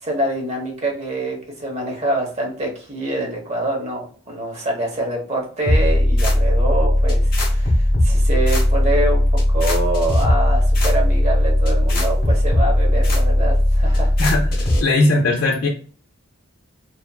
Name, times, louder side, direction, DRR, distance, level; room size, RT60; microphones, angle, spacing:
voice 1, 0.0-14.1, right 1 dB, 30° right, 1 dB, 0.8 m, -25 dB
sound 1, 5.7-14.8, left 1 dB, 40° left, 0.8 m, -17 dB
voice 2, 14.2-15.7, left 2 dB, 75° left, -1 dB, 0.5 m, -19 dB
2.7 x 2.4 x 2.2 m, 0.43 s
head